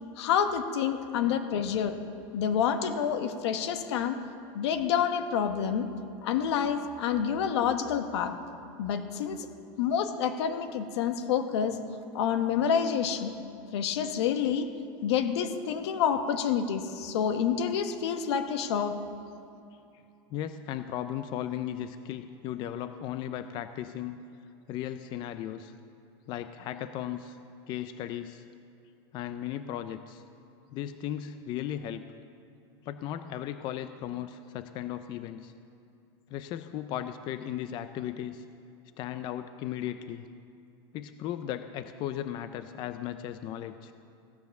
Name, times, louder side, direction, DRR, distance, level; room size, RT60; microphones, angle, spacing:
voice 1, 0.2-2.0 2.3-4.2 4.5-5.9 6.2-8.3 8.8-9.4 9.8-11.8 12.1-13.3 13.7-14.7 15.0-18.9, left 8 dB, 85° left, 8 dB, 1.3 m, -28 dB
voice 2, 20.3-24.2 24.7-25.7 26.3-27.4 27.7-28.4 29.1-30.2 30.7-32.0 32.8-35.5 36.3-38.4 39.0-40.3 40.9-43.9, left 11 dB, 35° left, 10 dB, 0.5 m, -36 dB
15.5 x 9.4 x 6.5 m, 2.6 s
supercardioid pair, 160°, 14 cm